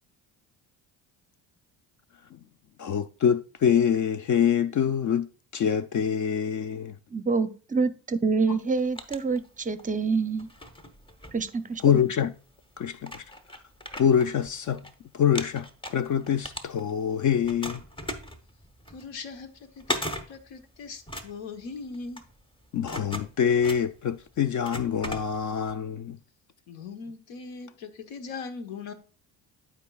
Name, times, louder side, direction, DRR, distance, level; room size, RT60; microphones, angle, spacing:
voice 1, 2.8-5.3 5.5-6.9 8.5-8.6 11.8-12.3 12.8-13.2 14.0-14.8 15.1-17.8 22.7-26.2, left 8 dB, 45° left, 0.4 m, -25 dB
voice 2, 7.1-10.5 11.3-12.0, right 4 dB, 20° right, 0.5 m, -27 dB
sound 1, 8.6-9.9 10.3-12.0 12.6-12.7 13.0-14.9 15.2-17.1 17.4-25.7, equal, 10° left, 0.9 m, -38 dB
voice 3, 18.9-22.2 26.7-28.9, left 4 dB, 75° left, 1.2 m, -40 dB
11.5 x 4.6 x 2.3 m
supercardioid pair, 75°, 45 cm